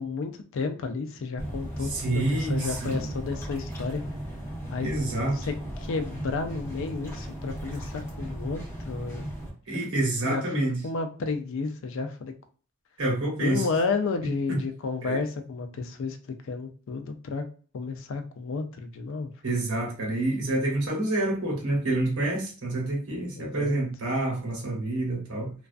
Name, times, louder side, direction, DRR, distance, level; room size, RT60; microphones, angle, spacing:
voice 1, 0.0-4.0 4.7-5.0 5.3-9.3 9.7-9.8 10.2-10.4 10.8-12.3 13.4-17.5 17.7-19.3 23.3-23.8, left 4 dB, 65° left, 7 dB, 0.4 m, -32 dB
sound 1, 1.4-9.5, right 1 dB, 10° left, 0.9 m, -36 dB
voice 2, 1.9-3.1 4.8-5.4 9.7-10.8 13.0-13.7 14.5-14.6 15.0-15.2 19.4-25.5, right 2 dB, 90° right, -1 dB, 1.0 m, -28 dB
2.3 x 2.3 x 2.3 m, 0.40 s
head